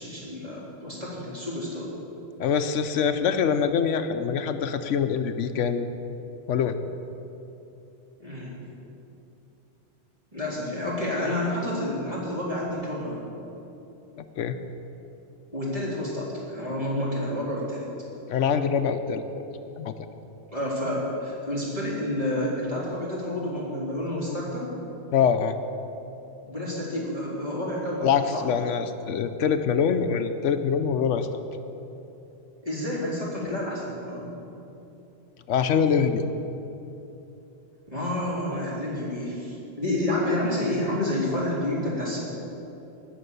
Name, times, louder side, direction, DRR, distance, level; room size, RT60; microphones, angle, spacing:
voice 1, 0.0-2.0 8.2-8.6 10.3-13.3 15.5-17.9 20.5-24.7 26.4-28.5 32.6-34.3 37.9-42.2, left 1 dB, 30° right, -7 dB, 3.6 m, -29 dB
voice 2, 2.4-5.9 6.5-6.8 14.4-14.6 18.3-19.2 19.8-19.9 25.1-25.6 28.0-31.3 35.5-36.2, left 7 dB, 90° left, 9 dB, 1.0 m, -24 dB
19.0 x 6.5 x 6.8 m, 2.9 s
omnidirectional pair, 1.2 m